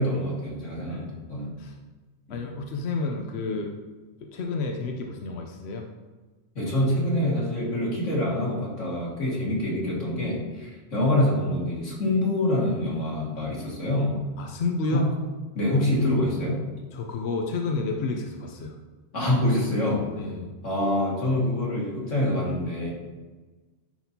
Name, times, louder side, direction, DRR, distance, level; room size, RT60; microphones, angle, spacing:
voice 1, 0.0-1.5 2.3-2.4 6.6-14.2 14.9-15.1 15.5-16.6 19.1-20.0 20.6-22.9, left 1 dB, 85° left, -5 dB, 2.3 m, -25 dB
voice 2, 0.9-1.2 1.6-1.7 2.3-3.7 4.3-5.8 14.4-15.0 16.9-18.8 20.2-20.5, left 3 dB, 65° left, 2 dB, 0.9 m, -30 dB
10.5 x 4.2 x 2.7 m, 1.3 s
omnidirectional pair, 1.2 m